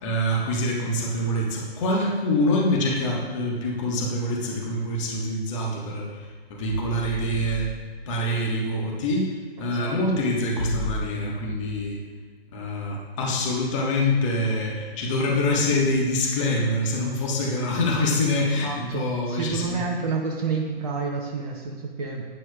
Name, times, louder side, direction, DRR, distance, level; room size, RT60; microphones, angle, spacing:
voice 1, 0.0-7.7 8.1-12.0 12.5-19.8, left 1 dB, 30° left, -2 dB, 1.4 m, -25 dB
voice 2, 9.6-10.2 18.4-22.2, right 4 dB, 35° right, 0 dB, 0.8 m, -30 dB
12.0 x 8.9 x 2.4 m, 1.5 s
figure-of-eight pair, 135°, 32 cm